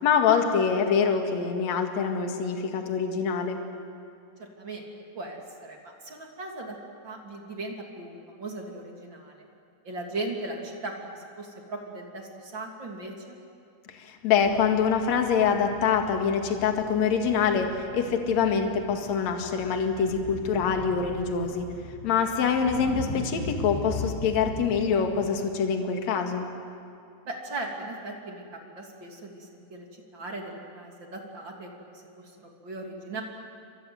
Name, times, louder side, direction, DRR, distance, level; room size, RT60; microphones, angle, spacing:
voice 1, 0.0-3.6 13.9-21.7 22.0-26.5, left 6 dB, 50° left, 4 dB, 2.5 m, -25 dB
voice 2, 4.4-4.9 5.1-6.8 7.0-9.5 9.8-13.4 27.2-33.2, right 2 dB, 30° right, 1 dB, 2.7 m, -38 dB
sound 1, 14.4-25.4, left 3 dB, 75° left, 4.7 m, -39 dB
29.0 x 25.0 x 7.9 m, 2.5 s
omnidirectional pair, 5.6 m